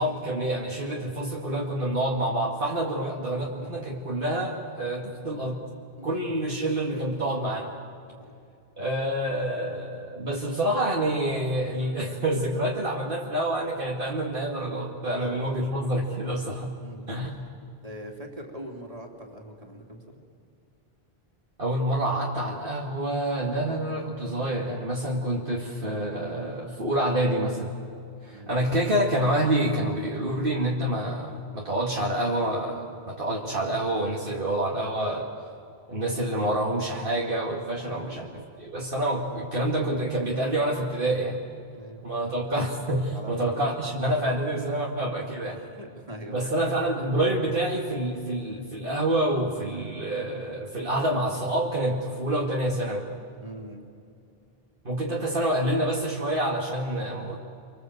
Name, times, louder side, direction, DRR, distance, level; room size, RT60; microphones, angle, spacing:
voice 1, 0.0-5.7 6.0-7.7 8.8-16.8 17.1-17.4 21.6-27.7 28.2-35.3 35.9-41.4 42.0-45.6 46.3-53.1 54.8-57.4, right 1 dB, 60° right, -2 dB, 2.2 m, -27 dB
voice 2, 6.0-6.6 8.1-8.3 15.0-15.7 16.8-17.4 17.8-20.2 28.3-28.6 37.9-38.4 41.7-42.1 43.1-43.6 45.5-46.6 53.4-53.8, right 1 dB, 35° right, 1 dB, 3.3 m, -43 dB
29.0 x 25.0 x 7.9 m, 2.5 s
omnidirectional pair, 1.0 m